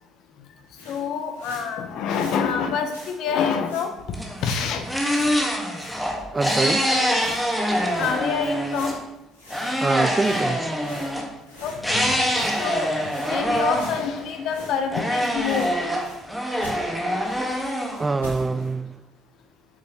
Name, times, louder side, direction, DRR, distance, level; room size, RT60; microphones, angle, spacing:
sound 1, 0.7-2.4 2.8-3.2 3.7-4.0 4.4-5.4 5.7-6.0 6.3-7.4 7.9-8.2 8.7-11.8 12.2-14.9 15.1-16.3 16.6-16.8 17.2-18.7, left 1 dB, 85° left, 3.1 m, -42 dB
voice 1, 0.9-3.9 4.4-4.8 8.0-8.9 9.6-9.8 11.6-12.3 12.6-12.9 13.3-15.7, left 6 dB, 60° left, 1.0 m, -26 dB
sound 2, 4.1-9.0 9.5-11.3 11.8-14.5 14.9-18.6, equal, ahead, 1.7 m, -25 dB
voice 2, 6.3-7.0 9.8-10.8 18.0-19.0, right 3 dB, 25° right, 0.3 m, -25 dB
8.5 x 7.2 x 3.1 m
hypercardioid pair, 55°, 0 cm